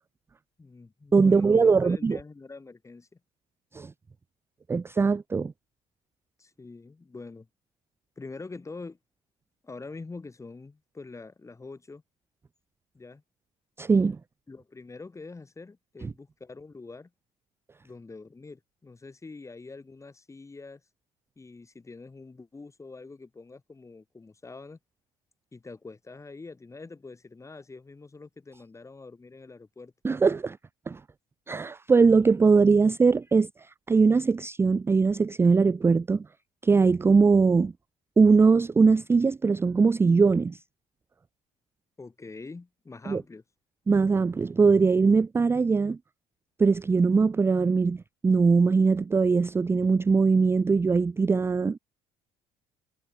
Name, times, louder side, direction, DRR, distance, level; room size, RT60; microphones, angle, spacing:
voice 1, 0.6-3.1 6.4-7.5 8.2-9.0 9.6-12.0 12.9-13.2 14.5-17.1 17.8-20.8 21.4-24.8 25.5-29.9 42.0-43.4, left 3 dB, 20° left, 4.6 m, -45 dB
voice 2, 1.1-2.2 3.7-3.9 4.7-5.5 13.8-14.2 16.0-16.1 30.0-30.6 30.9-31.0 31.5-36.3 36.6-37.7 38.2-40.6 43.1-43.2 43.9-46.0 46.6-51.8, right 4 dB, 15° right, 0.4 m, -21 dB
cardioid pair, 95°, 15 cm